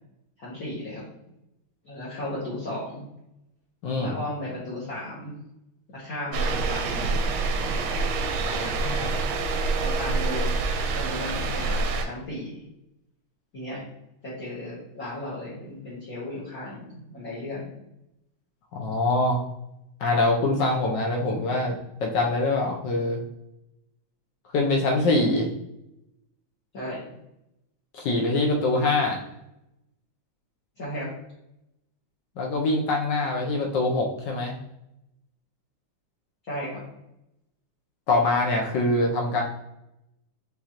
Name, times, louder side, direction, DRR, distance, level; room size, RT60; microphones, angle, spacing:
voice 1, 0.4-1.0 1.8-3.1 4.0-5.4 5.9-7.2 7.6-7.8 8.4-9.2 9.8-10.6 10.9-12.6 13.5-13.8 14.2-17.7 26.7-27.1 30.8-31.1 36.4-36.8, left 1 dB, 45° left, -9 dB, 1.5 m, -35 dB
voice 2, 3.8-4.2 18.7-19.4 20.0-21.8 22.0-23.2 24.5-25.5 27.9-29.2 32.4-34.6 38.1-39.4, left 2 dB, 65° left, 0 dB, 1.2 m, -24 dB
sound 1, 6.3-12.1, right 3 dB, 90° right, 1.5 m, -26 dB
5.9 x 3.1 x 2.8 m, 0.86 s
omnidirectional pair, 2.4 m